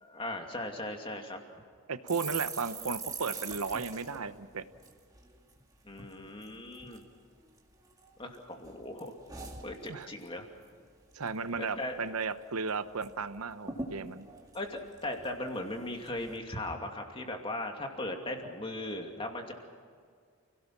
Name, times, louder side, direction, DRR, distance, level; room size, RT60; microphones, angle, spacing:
voice 1, 0.0-1.4 5.8-7.0 8.2-9.1 9.6-10.5 11.6-12.0 14.5-19.5, left 1 dB, 25° left, 3 dB, 2.6 m, -38 dB
voice 2, 1.9-4.6 9.9-10.1 11.1-14.3, right 4 dB, 85° right, 11 dB, 1.0 m, -35 dB
sound 1, 2.1-5.6 5.9-6.1 6.4-7.0 7.6-8.4 8.6-10.3 10.6-10.9 11.1-11.7 12.1-12.2 12.4-13.1 13.4-13.5 13.7-15.6 16.0-16.4, right 4 dB, 15° right, 2.1 m, -43 dB
29.5 x 17.5 x 6.1 m, 2.1 s
head